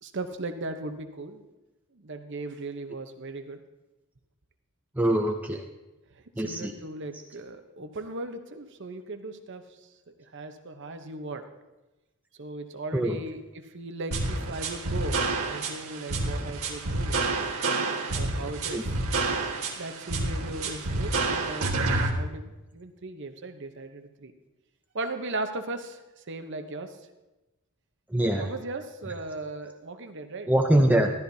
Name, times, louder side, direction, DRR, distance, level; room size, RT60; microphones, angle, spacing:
voice 1, 0.0-1.4 1.9-3.6 6.4-9.9 10.3-11.5 12.4-17.2 18.1-19.0 19.8-24.3 24.9-27.0 28.4-30.5, right 2 dB, 55° right, 6 dB, 0.9 m, -37 dB
voice 2, 5.0-5.6 6.4-6.7 12.9-13.2 18.7-18.8 28.1-28.5 30.5-31.1, right 1 dB, 10° right, 2 dB, 0.6 m, -23 dB
sound 1, 14.1-22.1, right 2 dB, 75° right, 1.5 m, -28 dB
13.5 x 13.0 x 2.7 m, 1.0 s
head